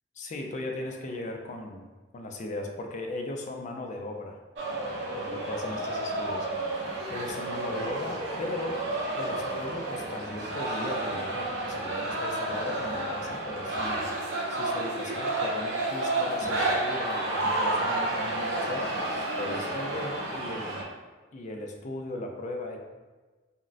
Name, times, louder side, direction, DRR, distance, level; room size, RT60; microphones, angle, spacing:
voice 1, 0.2-1.9 2.1-4.4 5.1-6.5 6.8-14.2 14.5-20.9 21.3-22.8, left 2 dB, 40° left, 2 dB, 0.3 m, -37 dB
sound 1, 4.6-20.8, right 2 dB, 70° right, 0.6 m, -31 dB
3.6 x 2.0 x 2.4 m, 1.3 s
head